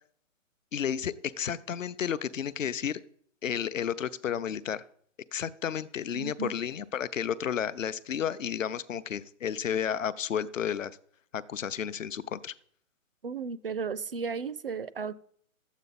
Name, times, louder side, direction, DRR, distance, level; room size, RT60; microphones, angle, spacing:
voice 1, 0.7-3.0 3.4-4.8 5.3-11.0 11.3-12.5, left 8 dB, 65° left, 16 dB, 0.7 m, -32 dB
voice 2, 6.1-6.5 13.2-15.1, right 5 dB, 45° right, 17 dB, 0.4 m, -34 dB
12.5 x 8.2 x 4.1 m, 0.62 s
hypercardioid pair, 165°, 41 cm